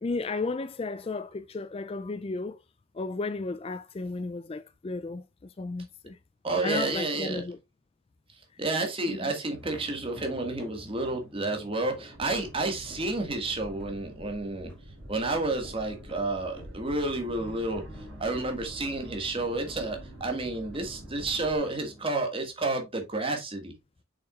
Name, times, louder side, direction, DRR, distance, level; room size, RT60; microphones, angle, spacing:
voice 1, 0.0-2.6 2.9-6.2 6.6-7.6 9.1-9.3, left 3 dB, 25° left, 0.3 m, -34 dB
voice 2, 6.4-7.4 8.6-14.7 15.1-17.8 18.2-23.7, right 2 dB, 25° right, 1.8 m, -30 dB
sound 1, 9.5-22.1, equal, 5° left, 2.2 m, -50 dB
sound 2, 12.1-21.6, equal, 70° right, 2.6 m, -46 dB
7.1 x 6.0 x 2.4 m
head